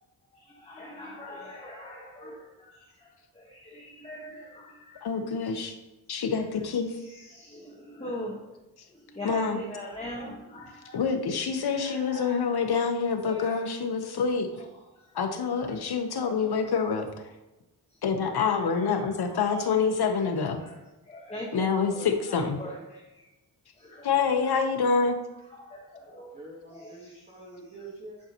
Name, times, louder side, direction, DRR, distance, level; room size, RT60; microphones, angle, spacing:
voice 1, 0.5-2.8 3.4-5.0 7.0-8.5 9.1-11.0 11.7-12.4 13.3-13.6 15.6-15.7 16.2-16.5 18.3-19.7 20.6-20.8 21.1-22.1 22.6-23.0 23.8-24.6 25.6-26.3 26.7-27.1, left 1 dB, 15° left, -3 dB, 1.1 m, -41 dB
voice 2, 5.0-5.7 6.1-6.9 9.2-9.6 10.9-14.5 15.1-17.2 18.0-20.6 21.5-22.6 24.0-25.2, left 5 dB, 70° left, 5 dB, 1.0 m, -26 dB
voice 3, 21.9-22.4 22.7-22.8 26.0-28.2, right 2 dB, 20° right, -4 dB, 1.4 m, -46 dB
9.9 x 5.4 x 2.9 m, 1.0 s
wide cardioid pair, 145°, 40 cm